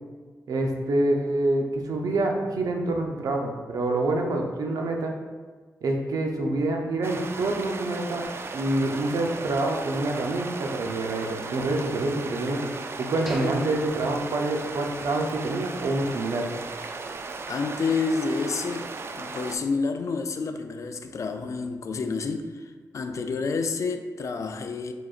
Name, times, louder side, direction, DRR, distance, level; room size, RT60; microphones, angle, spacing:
voice 1, 0.5-5.1 5.8-8.3 8.5-12.7 13.0-16.5, right 2 dB, 80° right, 2 dB, 0.6 m, -26 dB
sound 1, 7.0-19.6, right 4 dB, 40° right, 0.3 m, -36 dB
sound 2, 13.3-15.2 15.5-15.6 16.1-16.3, equal, 5° right, 0.6 m, -44 dB
voice 2, 17.5-24.9, left 4 dB, 55° left, 7 dB, 0.4 m, -29 dB
4.8 x 4.1 x 2.4 m, 1.4 s
cardioid pair, 85°, 6 cm